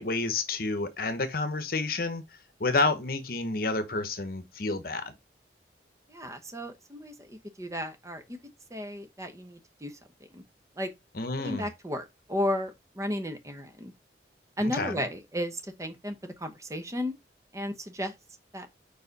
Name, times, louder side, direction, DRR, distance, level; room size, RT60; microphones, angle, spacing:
voice 1, 0.0-2.2 2.6-5.1 11.1-11.7 14.6-15.0, left 3 dB, 55° left, 0.9 m, -29 dB
voice 2, 6.1-8.4 8.7-9.9 10.3-10.4 10.8-10.9 11.4-13.9 14.6-17.1 17.5-18.1 18.5-18.7, left 1 dB, 20° right, 0.9 m, -34 dB
4.9 x 4.7 x 4.0 m
head